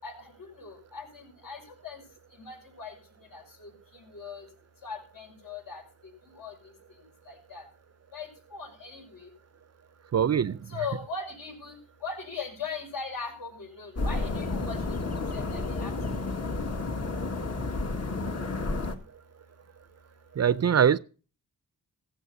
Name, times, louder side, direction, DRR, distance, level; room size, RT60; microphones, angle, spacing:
voice 1, 0.0-2.0 2.4-2.9 3.3-4.5 4.8-6.7 7.3-7.6 8.1-9.3 10.7-15.9, left 5 dB, 65° left, 6.4 m, -40 dB
voice 2, 10.1-10.8 20.4-21.0, right 8 dB, 45° right, 0.5 m, -23 dB
sound 1, 14.0-19.0, left 3 dB, 45° left, 1.8 m, -31 dB
16.0 x 15.0 x 2.7 m
wide cardioid pair, 115°, 37 cm